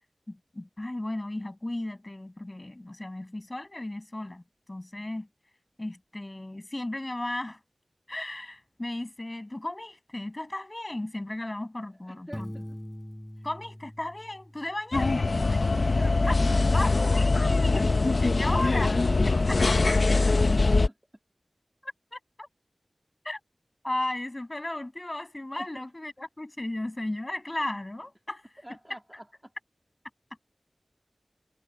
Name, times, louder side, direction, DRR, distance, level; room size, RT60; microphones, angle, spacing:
voice 1, 0.3-4.4 4.7-5.3 5.8-7.6 8.1-12.5 13.4-15.6 16.3-16.4 16.7-17.9 18.2-19.0 21.8-22.5 23.3-23.4 23.8-28.4, left 1 dB, 30° left, 6.8 m, -35 dB
voice 2, 12.0-12.8 15.8-16.9 19.2-19.3 20.3-21.0 25.6-25.7 28.6-29.5, equal, 10° right, 3.0 m, -43 dB
Piano, 12.3-15.1, equal, 10° left, 4.3 m, -42 dB
sound 1, 14.9-20.9, left 3 dB, 65° left, 0.8 m, -23 dB
wide cardioid pair, 60°, 0 cm